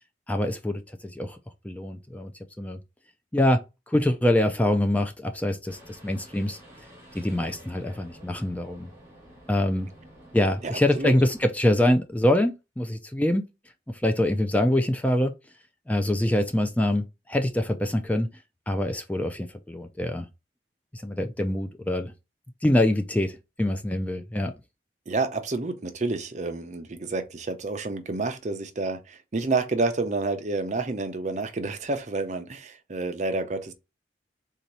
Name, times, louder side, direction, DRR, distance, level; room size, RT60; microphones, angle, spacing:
voice 1, 0.3-1.4 1.6-2.3 2.6-2.8 3.3-3.6 3.9-6.6 7.1-8.9 9.5-9.9 10.3-13.4 13.9-15.3 15.9-18.3 18.7-20.3 20.9-22.1 22.6-24.5, left 1 dB, 10° left, 0.4 m, -24 dB
sound 1, 5.7-11.4, equal, 15° right, 1.4 m, -50 dB
voice 2, 10.6-11.2 25.1-33.7, right 3 dB, 40° right, 0.6 m, -29 dB
3.9 x 2.8 x 4.6 m
head